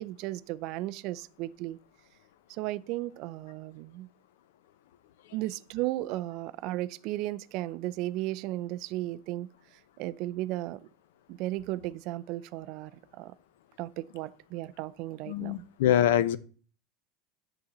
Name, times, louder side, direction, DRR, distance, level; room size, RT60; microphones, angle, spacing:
voice 1, 0.0-1.8 2.5-4.1 5.3-9.5 10.0-10.8 11.3-13.3 13.8-15.6, right 16 dB, 40° right, 0.4 m, -35 dB
voice 2, 15.3-16.4, left 11 dB, 80° left, 0.8 m, -24 dB
11.5 x 3.9 x 7.0 m
supercardioid pair, 175°, 0 cm